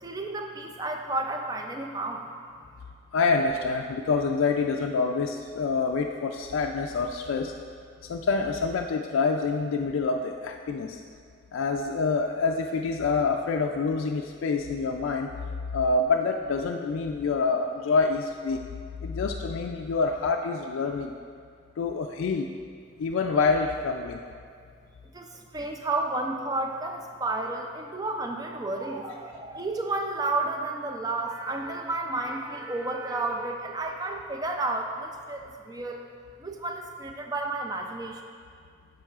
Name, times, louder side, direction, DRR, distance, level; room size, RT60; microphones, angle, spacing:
voice 1, 0.0-2.3 25.1-36.0 36.4-38.2, right 2 dB, 20° right, 3 dB, 0.4 m, -31 dB
voice 2, 3.1-7.5 8.1-11.0 11.5-15.3 15.7-18.6 19.0-21.2 21.8-22.5 23.0-24.2, left 4 dB, 80° left, 3 dB, 0.3 m, -26 dB
9.9 x 6.2 x 2.4 m, 2.2 s
head